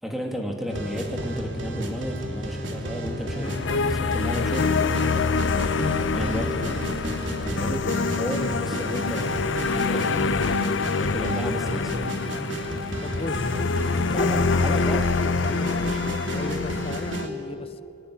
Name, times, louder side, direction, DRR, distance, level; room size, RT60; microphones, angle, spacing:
voice 1, 0.0-5.1 5.9-10.7 11.0-12.3 14.1-15.1 15.4-16.0, equal, ahead, 2 dB, 2.7 m, -33 dB
sound 1, 0.7-17.3, equal, 85° right, 3.0 m, -32 dB
Fireworks, 2.2-2.3 3.4-3.5 4.7-4.8 6.5-15.2, right 1 dB, 30° right, 3.9 m, -50 dB
voice 2, 3.3-4.2 5.7-6.0 13.0-13.6 14.0-14.7 15.6-17.8, left 2 dB, 30° left, 13 dB, 0.8 m, -36 dB
sound 2, 3.4-17.3, left 4 dB, 85° left, 0.6 m, -26 dB
23.5 x 17.5 x 9.9 m, 2.8 s
head